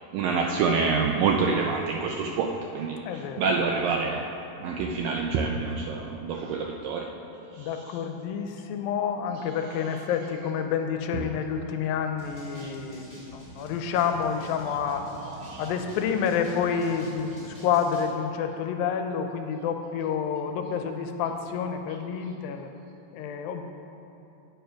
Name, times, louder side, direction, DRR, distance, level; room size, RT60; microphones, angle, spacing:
voice 1, 0.1-4.3 4.6-7.1 7.6-7.7 9.7-9.9 12.6-12.7 15.3-15.7, right 4 dB, 80° right, 1 dB, 2.1 m, -27 dB
voice 2, 3.1-3.5 7.6-15.0 15.6-22.7 23.1-23.6, left 7 dB, 80° left, 6 dB, 2.3 m, -29 dB
sound 1, 12.2-18.1, equal, 15° right, 1.3 m, -46 dB
9.2 x 8.0 x 5.7 m, 2.9 s
omnidirectional pair, 4.3 m